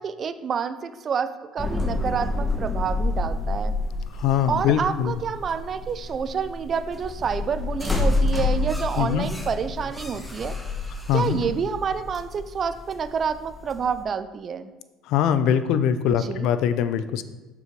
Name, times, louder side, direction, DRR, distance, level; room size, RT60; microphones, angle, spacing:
voice 1, 0.0-3.7 4.5-10.6 11.1-14.7 16.2-16.5, right 6 dB, 40° right, 13 dB, 0.5 m, -28 dB
sound 1, 1.6-14.0, left 2 dB, 10° left, 1.1 m, -28 dB
voice 2, 4.1-5.2 9.0-9.3 11.1-11.4 15.1-17.2, left 9 dB, 65° left, 12 dB, 0.5 m, -22 dB
6.7 x 6.7 x 3.1 m, 1.2 s
hypercardioid pair, 75°, 0 cm